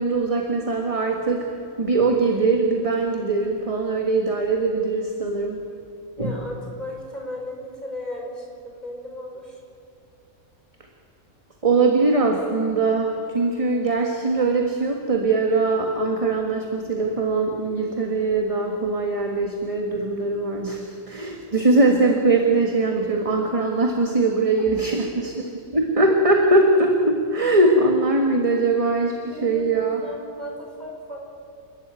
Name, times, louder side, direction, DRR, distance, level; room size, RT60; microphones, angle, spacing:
voice 1, 0.0-5.6 6.2-6.3 11.6-30.0, right 3 dB, 25° right, 2 dB, 1.7 m, -21 dB
voice 2, 6.2-9.6 24.6-24.7 29.1-31.2, left 1 dB, 30° left, -1 dB, 5.4 m, -36 dB
29.5 x 13.0 x 9.1 m, 2.3 s
omnidirectional pair, 1.5 m